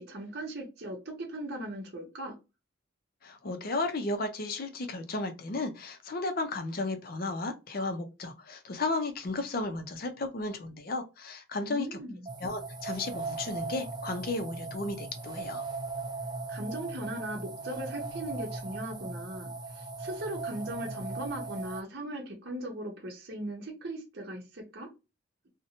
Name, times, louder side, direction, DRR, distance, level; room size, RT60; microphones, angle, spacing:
voice 1, 0.0-2.3 11.6-12.3 16.5-24.9, right 1 dB, 50° right, 0.7 m, -38 dB
voice 2, 3.2-12.0 12.4-15.6, left 2 dB, 45° left, 0.5 m, -34 dB
sound 1, 12.3-21.8, right 3 dB, 20° right, 0.4 m, -38 dB
2.6 x 2.1 x 2.8 m
head